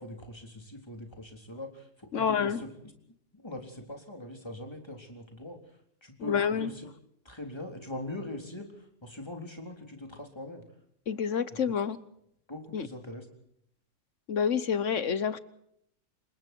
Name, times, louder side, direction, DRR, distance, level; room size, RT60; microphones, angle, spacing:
voice 1, 0.0-2.9 3.3-5.6 6.0-6.9 7.2-10.7 12.5-13.3, left 1 dB, 15° left, 3 dB, 3.7 m, -42 dB
voice 2, 2.1-2.6 6.2-6.7 11.1-12.0 12.7-12.9 14.3-15.4, left 7 dB, 55° left, 15 dB, 1.2 m, -28 dB
28.0 x 24.0 x 4.5 m, 0.73 s
omnidirectional pair, 1.7 m